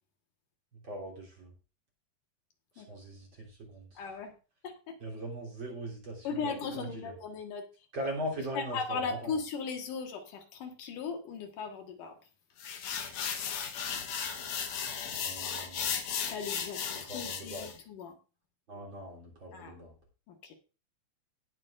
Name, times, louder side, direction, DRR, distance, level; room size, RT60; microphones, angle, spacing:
voice 1, 0.8-1.5 2.8-4.1 5.0-7.1 7.9-9.3 15.1-16.0 17.1-17.7 18.7-19.9, right 1 dB, 35° right, -1 dB, 3.9 m, -40 dB
voice 2, 4.0-4.3 4.6-5.0 6.2-7.6 8.5-12.1 16.3-18.1 19.5-19.7 20.3-20.5, left 5 dB, 80° left, 4 dB, 3.1 m, -37 dB
sound 1, 12.6-17.7, left 7 dB, 60° left, 2.0 m, -35 dB
18.5 x 7.5 x 2.5 m, 0.33 s
omnidirectional pair, 3.7 m